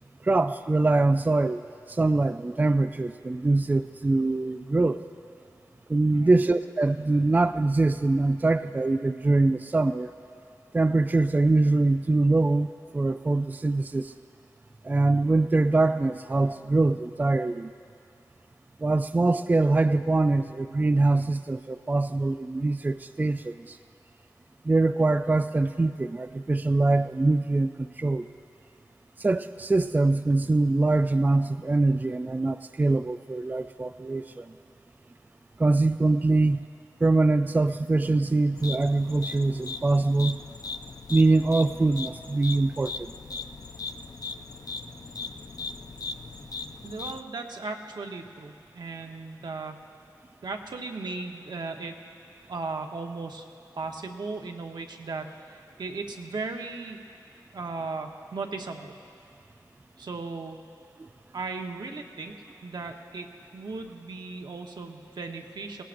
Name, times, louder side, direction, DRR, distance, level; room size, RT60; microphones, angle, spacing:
voice 1, 0.2-1.6 1.9-5.0 5.9-10.1 10.7-12.7 12.9-14.1 14.8-17.7 18.8-23.8 24.7-28.3 29.2-34.5 35.6-36.6 37.0-40.4 41.1-43.1 61.0-61.1, right 2 dB, 25° right, 9 dB, 0.3 m, -23 dB
sound 1, 38.6-47.2, left 4 dB, 55° left, 0.5 m, -38 dB
voice 2, 46.8-49.8 50.4-51.9 52.5-53.4 53.8-57.0 57.5-58.9 60.0-60.6 61.3-62.3 62.6-63.3 63.5-65.8, right 3 dB, 75° right, 3 dB, 1.0 m, -36 dB
19.0 x 17.5 x 2.6 m, 2.4 s
cardioid pair, 50°, 7 cm